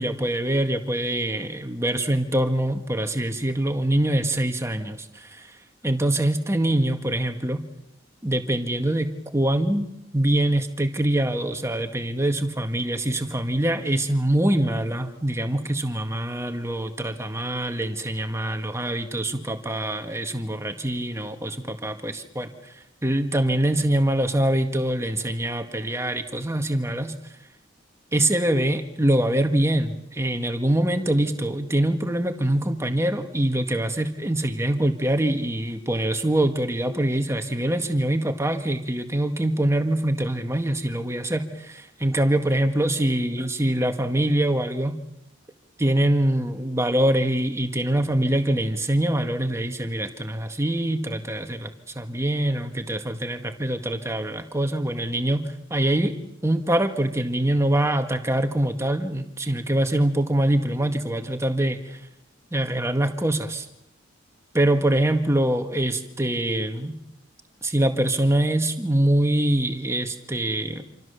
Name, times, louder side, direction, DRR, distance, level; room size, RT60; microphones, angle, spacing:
voice 1, 0.0-5.6 5.8-7.6 8.2-27.3 28.1-45.0 45.8-56.2 56.4-62.0 62.5-63.7 64.5-66.9 67.6-70.8, right 1 dB, 15° right, 6 dB, 1.8 m, -24 dB
27.0 x 26.5 x 7.0 m, 0.84 s
head